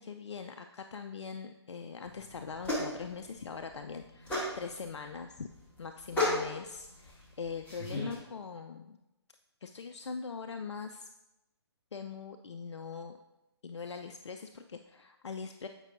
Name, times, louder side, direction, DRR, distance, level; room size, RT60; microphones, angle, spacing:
voice 1, 0.0-5.5 5.8-9.0 9.6-11.1 11.9-13.2 13.6-15.7, left 5 dB, 80° left, 7 dB, 0.4 m, -42 dB
sound 1, 2.0-8.1, left 1 dB, 10° left, 1.9 m, -36 dB
8.0 x 5.3 x 2.5 m, 0.94 s
figure-of-eight pair, 145°, 15 cm